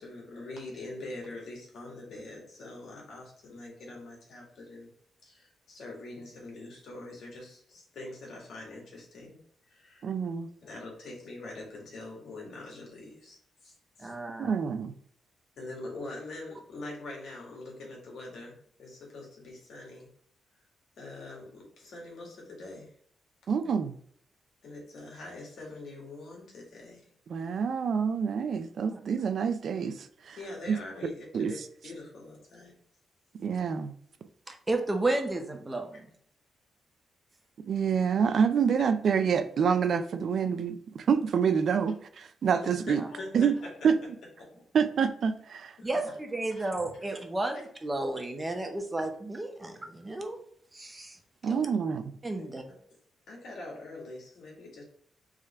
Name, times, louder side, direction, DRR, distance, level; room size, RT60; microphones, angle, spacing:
voice 1, 0.0-4.9 5.2-9.4 9.7-10.1 10.6-14.1 15.6-20.1 21.0-22.9 24.6-27.1 30.4-31.6 31.8-32.7 42.9-43.7 44.4-44.5 45.8-46.2 46.5-46.7 51.4-51.5 52.4-52.5 53.3-54.8, left 2 dB, 75° left, -2 dB, 1.8 m, -44 dB
voice 2, 10.0-10.5 14.4-14.9 23.5-24.0 27.3-30.4 30.7-30.8 31.3-31.5 33.4-33.9 37.7-43.0 43.3-43.6 43.8-44.0 44.7-45.8 51.4-52.1, right 6 dB, 65° right, 10 dB, 0.4 m, -27 dB
voice 3, 14.0-14.5 28.9-29.0 34.5-36.1 45.8-50.4 50.7-51.2 51.5-51.6 52.2-52.6, right 2 dB, 20° right, 4 dB, 0.8 m, -32 dB
3.7 x 3.2 x 4.2 m, 0.62 s
cardioid pair, 80°, 0 cm